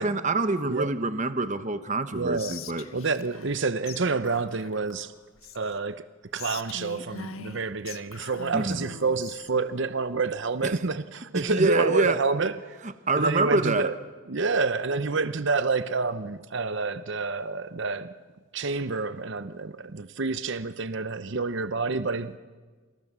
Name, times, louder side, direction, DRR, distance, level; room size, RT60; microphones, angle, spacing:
voice 1, 0.0-2.8 8.5-8.9 10.6-10.8 11.3-12.2 13.1-13.9, right 3 dB, 35° right, 1.0 m, -26 dB
voice 2, 2.1-2.6 2.9-5.1 5.5-6.0 6.3-12.8 13.2-14.0 14.3-18.1 18.5-22.4, right 4 dB, 55° right, 0.7 m, -28 dB
Whispering, 2.4-3.6 3.9-4.0 4.3-5.8 6.3-9.5, left 6 dB, 75° left, 1.4 m, -42 dB
28.0 x 27.0 x 7.4 m
head